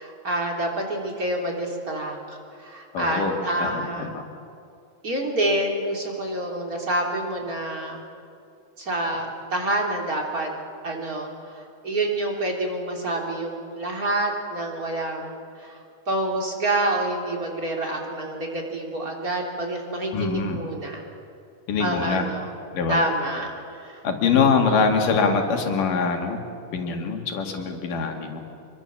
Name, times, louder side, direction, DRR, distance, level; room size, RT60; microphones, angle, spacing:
voice 1, 0.0-4.1 5.0-8.0 8.8-10.5 10.8-15.8 16.1-21.0 21.8-22.5 22.9-24.0 24.3-24.5, right 1 dB, 25° right, 0 dB, 3.6 m, -28 dB
voice 2, 2.9-4.2 20.1-20.6 21.7-22.3 22.7-23.0 24.0-26.4 26.7-28.4, left 5 dB, 75° left, 3 dB, 3.7 m, -23 dB
27.0 x 23.0 x 7.3 m, 2.5 s
omnidirectional pair, 3.8 m